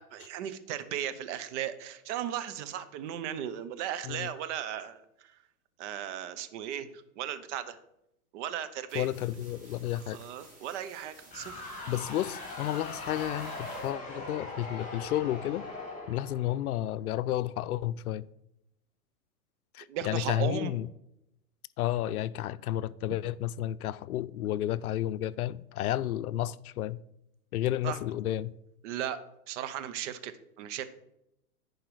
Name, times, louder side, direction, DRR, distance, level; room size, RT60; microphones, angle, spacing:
voice 1, 0.0-5.4 5.8-7.8 8.3-9.1 10.1-11.6 19.9-20.7 27.8-28.0 28.8-29.2 29.5-30.9, right 10 dB, 55° right, 1.0 m, -36 dB
voice 2, 8.9-10.2 11.9-15.6 16.1-18.3 19.7-20.9 21.8-27.0 27.5-28.5, left 13 dB, 80° left, 0.5 m, -32 dB
sound 1, 8.9-13.9, right 1 dB, 15° right, 3.2 m, -55 dB
sound 2, 11.3-17.1, left 2 dB, 15° left, 3.2 m, -41 dB
10.5 x 4.8 x 4.9 m
hypercardioid pair, 110°, 44 cm